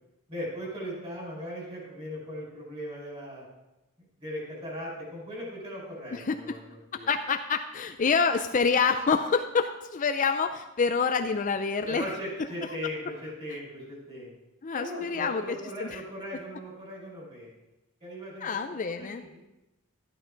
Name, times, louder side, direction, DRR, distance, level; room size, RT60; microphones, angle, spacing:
voice 1, 0.3-3.5 4.2-7.1 11.9-14.3 14.7-17.5 18.0-19.4, equal, 25° right, -4 dB, 5.2 m, -38 dB
voice 2, 6.1-6.6 6.9-12.2 12.6-12.7 14.6-16.0 18.4-19.2, left 5 dB, 35° left, 8 dB, 0.4 m, -27 dB
13.0 x 11.0 x 3.9 m, 0.99 s
head